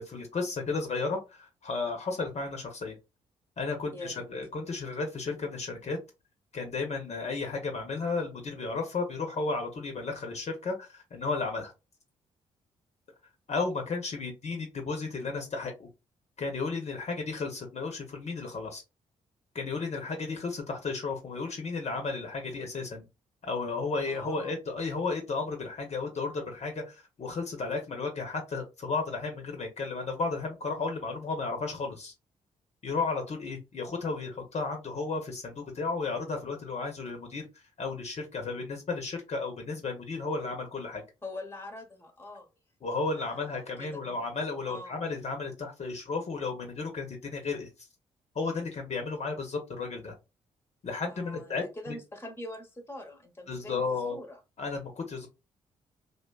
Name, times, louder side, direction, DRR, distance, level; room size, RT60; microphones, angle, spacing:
voice 1, 0.0-3.0 3.6-6.0 6.5-11.7 13.5-15.9 16.4-18.8 19.5-23.1 23.4-32.1 32.8-37.5 37.8-41.0 42.8-47.7 48.3-50.1 50.8-52.0 53.5-54.2 54.6-55.3, left 4 dB, 45° left, 3 dB, 0.7 m, -33 dB
voice 2, 3.9-4.3 24.1-24.6 41.2-42.5 43.2-44.0 44.7-44.9 51.1-53.8 54.1-54.4, left 1 dB, 15° left, 6 dB, 0.8 m, -43 dB
2.5 x 2.2 x 2.3 m, 0.26 s
hypercardioid pair, 45°, 16 cm